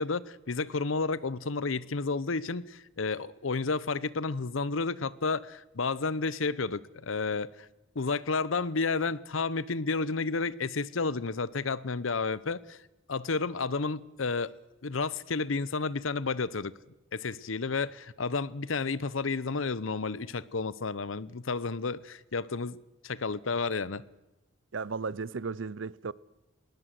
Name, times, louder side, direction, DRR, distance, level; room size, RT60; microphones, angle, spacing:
voice 1, 0.0-7.7 7.9-12.8 13.1-14.5 14.8-16.7 17.1-22.8 23.0-24.0, left 4 dB, 85° left, 0.8 m, -31 dB
voice 2, 24.7-26.1, right 4 dB, 70° right, 0.6 m, -35 dB
19.5 x 19.0 x 7.7 m
head